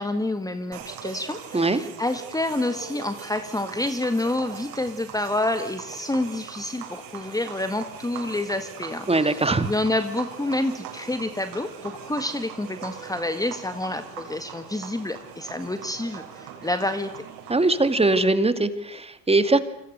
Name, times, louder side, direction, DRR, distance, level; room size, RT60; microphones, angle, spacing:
voice 1, 0.0-17.2, left 2 dB, 10° left, 10 dB, 1.7 m, -28 dB
sound 1, 0.7-18.2, right 8 dB, 65° right, 7.0 m, -41 dB
voice 2, 9.1-9.7 17.5-19.6, right 2 dB, 15° right, 11 dB, 2.5 m, -21 dB
27.5 x 26.0 x 6.7 m, 0.80 s
hypercardioid pair, 70°, 41 cm